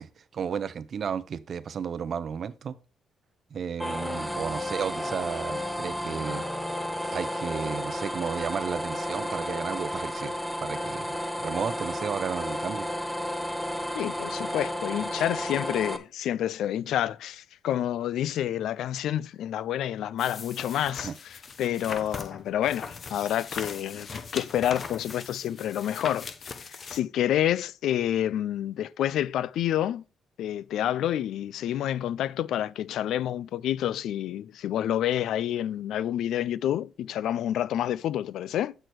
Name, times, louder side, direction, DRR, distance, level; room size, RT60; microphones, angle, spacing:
voice 1, 0.0-2.8 3.5-6.4 7.1-12.9 21.0-21.1, right 7 dB, 55° right, 0.6 m, -33 dB
sound 1, 3.8-16.0, equal, 5° left, 0.8 m, -32 dB
voice 2, 13.9-24.1 24.3-26.3 26.9-30.0 30.4-38.7, left 11 dB, 80° left, 0.3 m, -28 dB
sound 2, 20.2-27.0, left 5 dB, 45° left, 0.8 m, -39 dB
6.7 x 6.1 x 4.5 m
cardioid pair, 90°, 0 cm